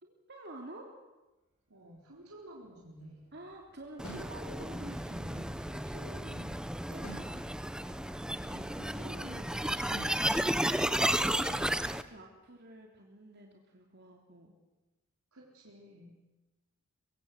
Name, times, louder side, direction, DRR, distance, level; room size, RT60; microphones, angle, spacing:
voice 1, 0.0-0.9 3.3-7.5 10.3-14.5, right 1 dB, 50° right, 1 dB, 2.9 m, -49 dB
voice 2, 1.7-3.3 8.5-9.9 15.3-16.1, right 1 dB, 85° right, -3 dB, 4.3 m, -51 dB
sound 1, 2.1-8.6, right 1 dB, 30° right, 5.3 m, -61 dB
sound 2, 4.0-4.3 7.0-7.3 9.9-10.2, equal, 85° left, 7.9 m, -45 dB
sound 3, 4.0-12.0, right 1 dB, 5° right, 0.8 m, -33 dB
24.5 x 23.0 x 7.9 m, 1.1 s
head